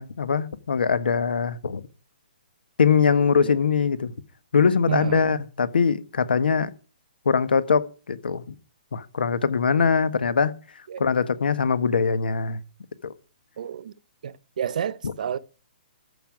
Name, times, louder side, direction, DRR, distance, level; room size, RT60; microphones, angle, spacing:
voice 1, 0.0-1.8 2.8-4.1 4.5-6.7 7.2-8.5 8.9-10.5 11.0-12.6 13.0-13.1 15.0-15.1, left 6 dB, 90° left, 1.4 m, -22 dB
voice 2, 4.9-5.4 10.9-11.0 13.6-13.9 14.2-15.4, right 9 dB, 55° right, 0.8 m, -30 dB
14.0 x 5.7 x 8.9 m
hypercardioid pair, 165°, 5 cm